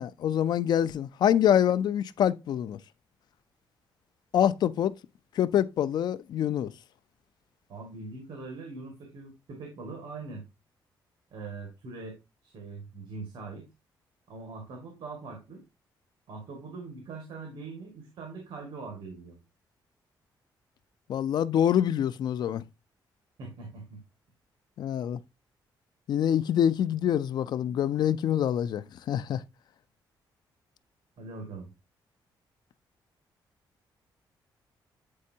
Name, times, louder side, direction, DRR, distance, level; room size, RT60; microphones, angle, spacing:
voice 1, 0.0-2.8 4.3-5.0 5.4-6.7 21.1-22.6 24.8-25.2 26.1-29.4, left 10 dB, 60° left, 0.4 m, -25 dB
voice 2, 7.7-10.4 11.3-13.7 14.3-15.6 16.3-19.4 23.4-24.0 31.2-31.7, right 3 dB, 75° right, 1.9 m, -42 dB
8.4 x 4.4 x 2.7 m
cardioid pair, 155°, 8 cm